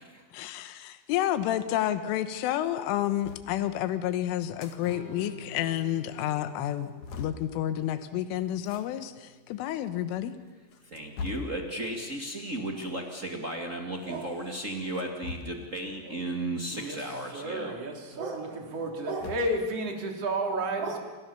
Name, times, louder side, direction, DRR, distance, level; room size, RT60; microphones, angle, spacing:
voice 1, 0.3-6.9 7.2-10.3, left 12 dB, 85° left, 11 dB, 3.7 m, -30 dB
sound 1, 3.2-3.5 4.4-4.8 5.1-5.2 5.5-5.6 6.1-6.2 6.6-7.4 8.6-8.8 9.7-9.8 10.5-11.6 12.7-13.0 14.8-15.7 16.7-16.9 17.3-17.4 18.7-19.6, left 4 dB, 50° left, 2.5 m, -41 dB
Strum, 4.8-11.1, left 2 dB, 30° left, 4.1 m, -50 dB
voice 2, 10.8-17.7, right 1 dB, 75° right, 2 dB, 0.7 m, -35 dB
voice 3, 16.7-17.0 17.3-21.0, right 2 dB, 35° right, 3 dB, 3.8 m, -32 dB
28.5 x 27.0 x 7.0 m, 1.2 s
omnidirectional pair, 5.6 m